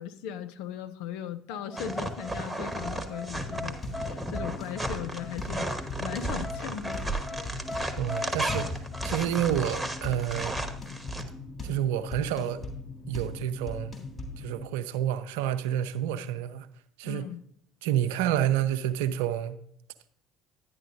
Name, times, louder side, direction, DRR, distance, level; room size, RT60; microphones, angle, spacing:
voice 1, 0.0-7.0 7.3-7.4 17.0-17.4, left 9 dB, 70° left, 0.5 m, -38 dB
sound 1, 1.5-9.3, left 2 dB, 5° left, 1.6 m, -41 dB
sound 2, 1.8-11.2, right 1 dB, 10° right, 1.1 m, -34 dB
sound 3, 3.3-14.7, left 2 dB, 30° left, 3.0 m, -39 dB
voice 2, 8.0-10.6 11.6-12.6 13.1-14.0 14.4-16.7 17.0-17.3 17.8-19.6, right 11 dB, 75° right, 0.5 m, -29 dB
11.0 x 9.5 x 2.6 m
hypercardioid pair, 60°, 0 cm